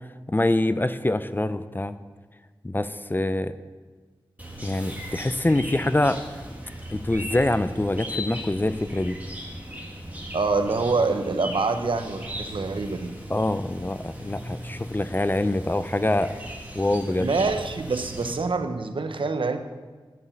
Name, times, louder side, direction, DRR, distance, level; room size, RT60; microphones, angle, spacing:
voice 1, 0.3-2.0 2.6-3.5 4.6-6.2 6.9-9.2 13.3-16.4 16.7-17.3, left 1 dB, 25° left, 12 dB, 0.5 m, -25 dB
Chirp tweet, 4.4-18.3, equal, 20° right, 2.0 m, -38 dB
voice 2, 10.3-13.1 17.2-19.6, right 3 dB, 75° right, 8 dB, 0.8 m, -26 dB
8.3 x 7.0 x 7.1 m, 1.4 s
wide cardioid pair, 50°, 9 cm